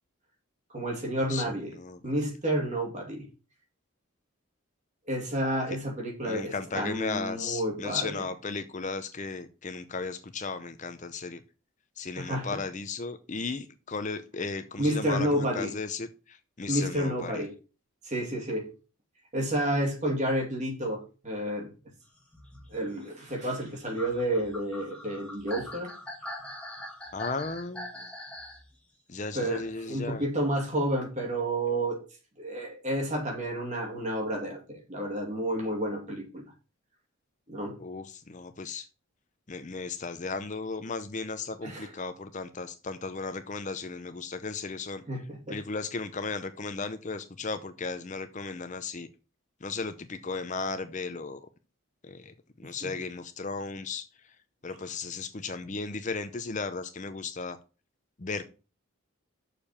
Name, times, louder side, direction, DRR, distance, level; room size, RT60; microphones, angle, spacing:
voice 1, 0.7-1.7 2.0-3.2 5.1-8.1 12.2-12.6 14.8-15.7 16.7-17.5 18.0-18.7 19.3-21.7 22.7-25.9 29.3-32.0 32.4-36.4 37.5-37.7 41.6-41.9 45.1-45.6 52.8-52.9, right 1 dB, 35° right, 1 dB, 2.4 m, -30 dB
voice 2, 1.3-2.1 5.7-5.8 6.2-11.4 12.0-17.4 27.1-28.0 29.1-30.2 37.8-38.9 39.5-45.0 45.5-49.1 49.6-51.4 52.0-52.3 52.6-54.1 54.6-57.6 58.2-58.4, left 4 dB, 35° left, 10 dB, 0.6 m, -35 dB
sound 1, 22.2-28.6 29.9-30.0, left 1 dB, 5° left, 1.6 m, -43 dB
6.7 x 5.1 x 7.1 m, 0.34 s
head